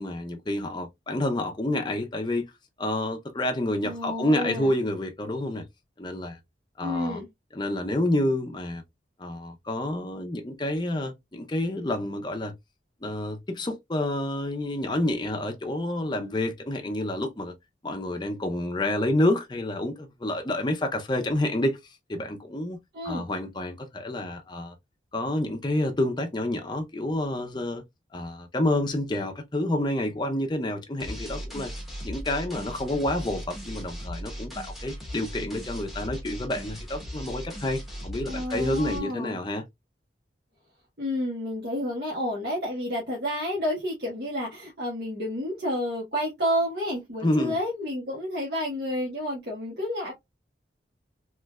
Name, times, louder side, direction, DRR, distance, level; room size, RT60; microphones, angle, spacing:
voice 1, 0.0-2.5 2.8-5.6 6.0-6.4 6.8-7.2 7.5-8.8 9.2-12.5 13.0-17.5 17.8-22.8 23.0-24.7 25.1-27.8 28.1-31.7 32.0-39.6 47.2-47.5, left 1 dB, 25° left, 0.6 m, -28 dB
voice 2, 3.8-4.7 6.8-7.3 22.9-23.2 38.3-39.4 41.0-50.1, left 1 dB, 60° right, 1.3 m, -30 dB
sound 1, 31.0-39.0, equal, ahead, 1.0 m, -38 dB
3.3 x 3.2 x 2.3 m
head